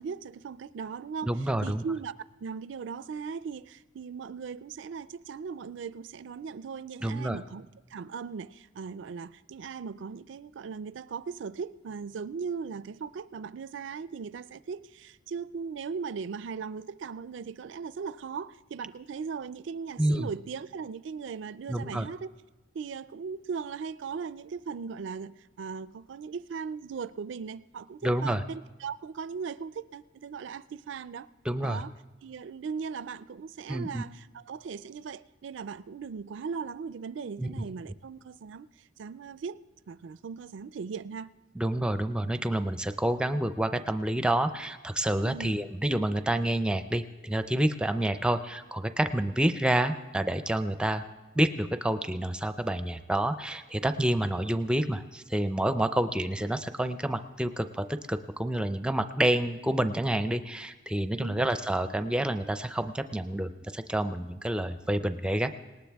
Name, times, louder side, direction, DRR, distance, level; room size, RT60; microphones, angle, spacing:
voice 1, 0.0-2.1 2.4-22.3 22.7-31.3 31.6-31.9 32.2-41.3 45.2-45.6 61.2-61.5, right 5 dB, 70° right, 0.4 m, -38 dB
voice 2, 1.2-1.8 7.0-7.4 20.0-20.3 21.7-22.1 28.0-28.4 31.5-31.8 33.7-34.0 37.4-37.5 41.6-51.0 51.4-65.5, right 1 dB, 5° right, 0.5 m, -28 dB
19.0 x 19.0 x 3.5 m
head